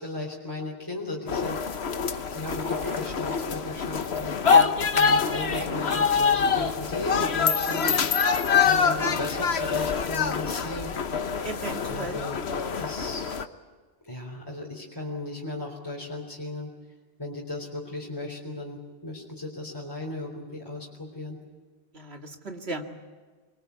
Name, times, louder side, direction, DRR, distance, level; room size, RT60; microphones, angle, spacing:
voice 1, 0.0-1.8 2.3-4.4 5.0-8.0 8.6-10.9 11.9-12.4 12.7-13.3 14.1-16.7 17.2-21.4, left 2 dB, 20° left, -3 dB, 3.8 m, -36 dB
sound 1, 1.3-13.4, left 6 dB, 80° left, 1.3 m, -25 dB
sound 2, 2.1-4.7 5.0-7.4, right 1 dB, 15° right, 1.7 m, -37 dB
voice 2, 11.4-12.2 21.9-22.8, right 3 dB, 80° right, 4 dB, 2.5 m, -34 dB
25.0 x 22.5 x 8.3 m, 1.4 s
omnidirectional pair, 1.1 m